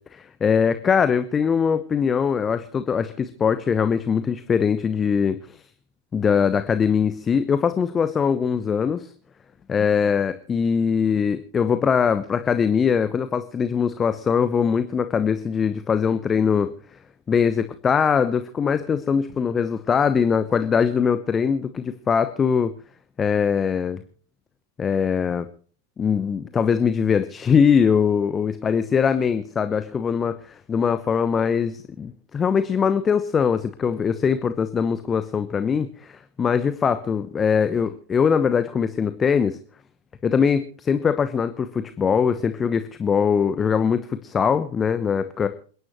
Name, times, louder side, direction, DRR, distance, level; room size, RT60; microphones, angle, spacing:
voice 1, 0.1-5.6 6.1-9.1 9.7-16.7 17.3-22.7 23.2-24.0 24.8-25.5 26.0-39.6 40.2-45.5, left 6 dB, 20° left, 11 dB, 1.0 m, -22 dB
28.0 x 11.0 x 3.1 m, 0.43 s
figure-of-eight pair, 90°, 0 cm